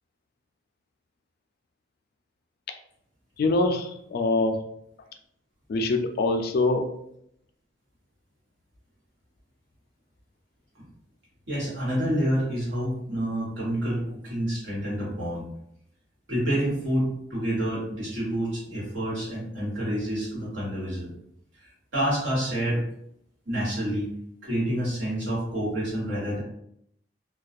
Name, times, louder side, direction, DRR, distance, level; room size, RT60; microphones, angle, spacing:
voice 1, 3.4-4.6 5.7-6.9, left 2 dB, 55° left, 5 dB, 0.3 m, -24 dB
voice 2, 11.5-15.5 16.3-21.1 21.9-22.8 23.4-24.1 24.4-26.4, equal, 90° right, -7 dB, 1.3 m, -28 dB
2.3 x 2.2 x 2.5 m, 0.74 s
head